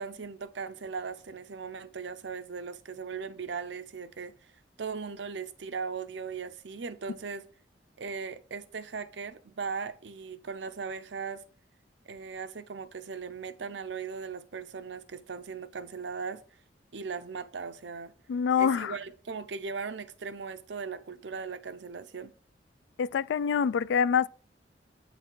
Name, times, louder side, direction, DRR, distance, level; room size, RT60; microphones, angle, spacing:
voice 1, 0.0-4.3 4.8-7.5 8.0-11.4 12.1-16.4 16.9-18.1 18.6-22.3, right 5 dB, 80° right, 0.6 m, -38 dB
voice 2, 18.3-18.9 23.0-24.3, left 7 dB, 85° left, 0.3 m, -25 dB
8.7 x 4.2 x 4.6 m
head